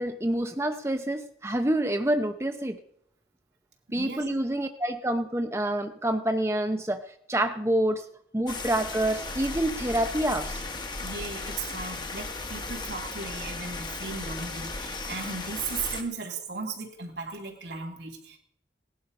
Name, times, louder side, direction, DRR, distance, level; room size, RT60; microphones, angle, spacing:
voice 1, 0.0-2.8 3.9-8.1 8.3-10.6, right 1 dB, 15° right, 7 dB, 0.8 m, -27 dB
voice 2, 3.9-4.3 11.0-18.4, right 4 dB, 75° right, 1 dB, 2.9 m, -36 dB
sound 1, 8.5-16.0, left 3 dB, 25° left, 1.3 m, -36 dB
18.5 x 11.0 x 5.3 m, 0.72 s
head